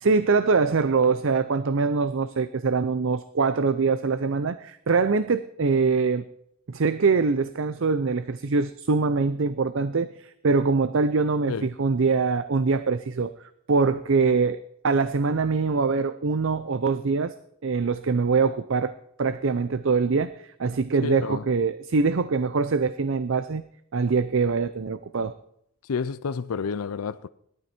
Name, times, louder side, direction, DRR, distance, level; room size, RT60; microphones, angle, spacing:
voice 1, 0.0-6.2 6.7-13.3 13.7-14.6 14.8-17.3 17.6-23.6 23.9-25.3, right 4 dB, 60° right, 0.5 m, -23 dB
voice 2, 21.0-21.5 25.8-27.3, left 5 dB, 85° left, 0.5 m, -30 dB
17.5 x 12.0 x 4.4 m
head